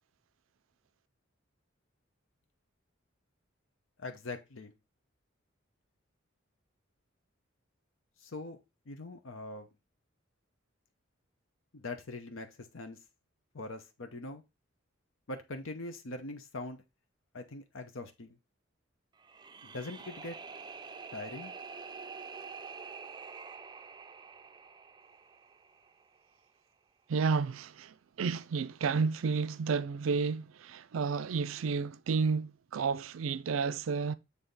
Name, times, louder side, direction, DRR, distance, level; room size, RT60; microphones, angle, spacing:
voice 1, 4.0-4.7 8.2-8.6 8.9-9.7 11.7-13.0 13.5-14.4 15.3-16.8 17.3-18.4 19.6-20.4 21.1-21.5, left 2 dB, 80° left, 0.9 m, -42 dB
sound 1, 19.2-26.3, right 5 dB, 20° right, 0.4 m, -47 dB
voice 2, 27.1-34.1, right 5 dB, 90° right, 0.4 m, -31 dB
7.1 x 3.4 x 3.9 m
head